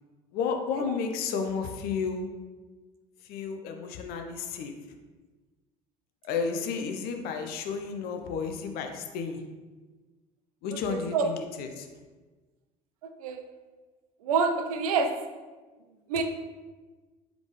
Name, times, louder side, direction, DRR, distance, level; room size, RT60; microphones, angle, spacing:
voice 1, 0.3-2.3 3.2-4.7 6.2-9.4 10.6-11.9, left 5 dB, 55° left, 5 dB, 0.6 m, -32 dB
voice 2, 10.9-11.3 13.2-13.4 14.2-15.2 16.1-16.2, right 4 dB, 75° right, 7 dB, 0.4 m, -26 dB
3.7 x 3.5 x 3.1 m, 1.3 s
figure-of-eight pair, 60°, 19 cm